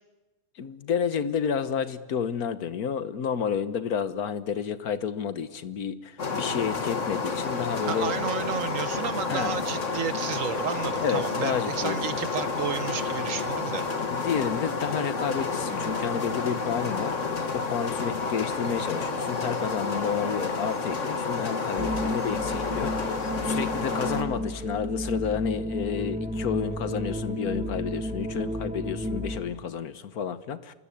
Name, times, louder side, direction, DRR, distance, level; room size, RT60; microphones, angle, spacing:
voice 1, 0.6-8.2 9.3-9.5 11.0-12.0 14.1-17.2 17.5-30.7, left 7 dB, 80° left, 13 dB, 1.6 m, -30 dB
sound 1, 6.2-24.2, left 4 dB, 55° left, 2.2 m, -30 dB
voice 2, 7.8-13.8, right 7 dB, 60° right, 14 dB, 1.4 m, -32 dB
sound 2, 21.8-29.4, equal, 5° right, 1.3 m, -32 dB
27.5 x 20.5 x 8.5 m, 1.2 s
omnidirectional pair, 1.6 m